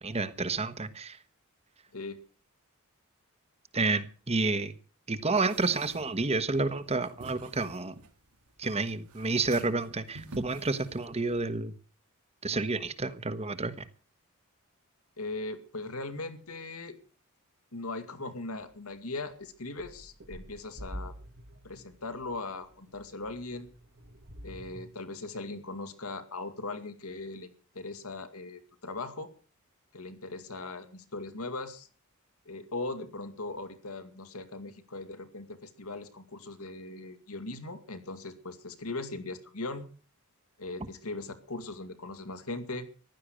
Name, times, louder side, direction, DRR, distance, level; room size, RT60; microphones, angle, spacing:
voice 1, 0.0-1.2 3.7-4.8 5.1-7.9 8.6-11.7 12.4-13.9, right 3 dB, 30° right, 13 dB, 1.3 m, -30 dB
sound 1, 5.4-11.5, right 3 dB, 90° right, 2.3 m, -50 dB
voice 2, 15.2-17.0 17.7-21.1 21.6-23.7 24.4-29.3 29.9-31.9 32.5-39.9 40.6-42.9, left 2 dB, 75° left, 8 dB, 2.3 m, -39 dB
sound 2, 18.7-18.8 19.3-24.9, equal, 65° right, 2.1 m, -47 dB
15.5 x 12.0 x 6.4 m, 0.39 s
head